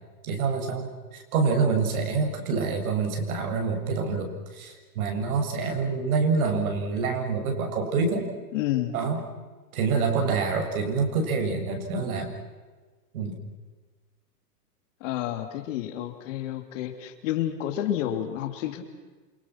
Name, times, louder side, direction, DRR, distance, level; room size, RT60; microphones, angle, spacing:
voice 1, 0.2-8.3 8.9-9.2 9.7-12.3 13.1-13.4, right 4 dB, 60° right, 3 dB, 7.0 m, -26 dB
voice 2, 8.5-8.9 15.0-18.8, left 12 dB, 50° left, 6 dB, 3.2 m, -30 dB
28.0 x 26.0 x 6.1 m, 1.3 s
hypercardioid pair, 150°, 48 cm